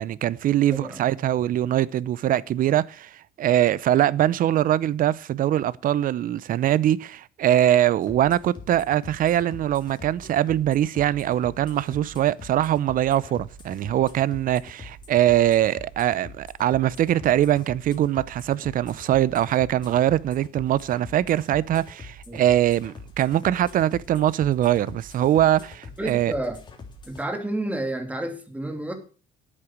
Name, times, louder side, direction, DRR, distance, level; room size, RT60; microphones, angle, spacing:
voice 1, 0.0-3.1 3.4-26.3, right 12 dB, 55° right, 0.6 m, -22 dB
voice 2, 0.7-1.0 22.3-22.4 26.0-26.6 27.1-28.9, right 1 dB, 10° right, 2.7 m, -30 dB
sound 1, 8.0-27.2, left 3 dB, 25° left, 3.5 m, -44 dB
10.0 x 8.8 x 6.1 m
cardioid pair, 110°, 17 cm